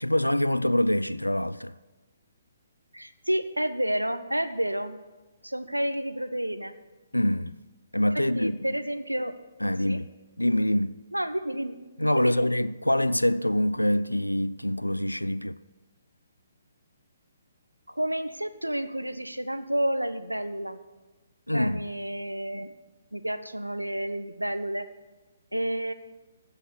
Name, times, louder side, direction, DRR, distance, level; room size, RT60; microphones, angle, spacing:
voice 1, 0.0-1.7 7.1-7.6 7.9-8.6 9.6-10.1 10.4-11.0 12.0-15.6 21.5-21.9, left 1 dB, 85° left, 0.4 m, -25 dB
voice 2, 2.9-5.0 5.4-6.8 8.1-9.3 9.8-10.0 11.1-11.8 12.1-12.5 18.0-20.8 21.5-22.7 23.1-24.9 25.5-25.9, right 1 dB, 85° right, 0.8 m, -30 dB
15.5 x 5.9 x 6.6 m
figure-of-eight pair, 130°, 0 cm